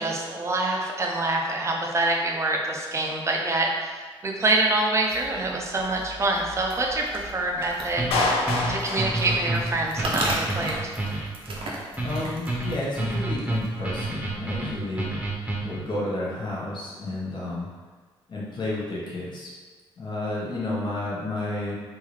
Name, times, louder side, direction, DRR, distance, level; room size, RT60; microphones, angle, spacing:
voice 1, 0.0-4.0 4.2-8.3 8.7-10.9, right 2 dB, 30° right, 0 dB, 0.6 m, -26 dB
sound 1, 5.1-13.9, right 1 dB, 65° right, 0.8 m, -37 dB
sound 2, 8.0-15.9, right 2 dB, 10° right, 0.9 m, -29 dB
Clapping, 8.1-10.1, left 2 dB, 85° left, 0.5 m, -27 dB
voice 2, 12.0-15.1 15.6-17.7 18.3-19.5 20.0-21.7, left 2 dB, 50° left, -6 dB, 1.1 m, -31 dB
3.7 x 2.6 x 3.1 m, 1.4 s
cardioid pair, 95°, 10 cm